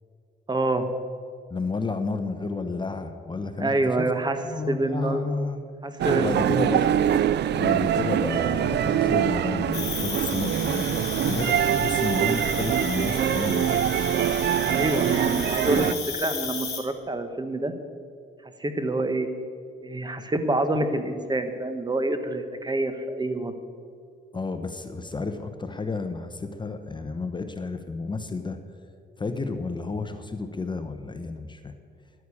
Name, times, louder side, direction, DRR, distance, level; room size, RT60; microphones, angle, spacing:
voice 1, 0.5-0.9 3.6-4.4 4.7-5.2 5.8-6.5 14.7-17.7 18.6-19.3 19.8-23.5, right 2 dB, 20° right, 9 dB, 1.2 m, -27 dB
voice 2, 1.5-4.1 4.4-5.6 6.2-7.0 7.3-13.7 15.7-16.0 24.3-28.6 29.2-31.7, left 3 dB, 25° left, 8 dB, 0.8 m, -31 dB
sound 1, 6.0-15.9, right 10 dB, 60° right, 0.5 m, -24 dB
Cricket, 9.7-16.8, left 6 dB, 55° left, 3.6 m, -34 dB
11.0 x 9.3 x 8.5 m, 2.3 s
cardioid pair, 90°, 20 cm